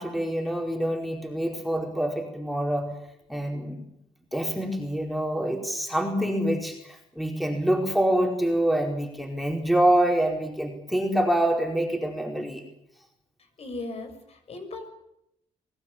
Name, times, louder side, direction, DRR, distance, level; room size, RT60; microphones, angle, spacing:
voice 1, 0.0-2.9 3.3-3.8 4.3-12.6, right 1 dB, ahead, 1 dB, 4.8 m, -26 dB
voice 2, 13.6-14.9, left 2 dB, 55° left, 7 dB, 6.7 m, -37 dB
23.5 x 17.5 x 8.8 m, 0.80 s
cardioid pair, 85°, 13 cm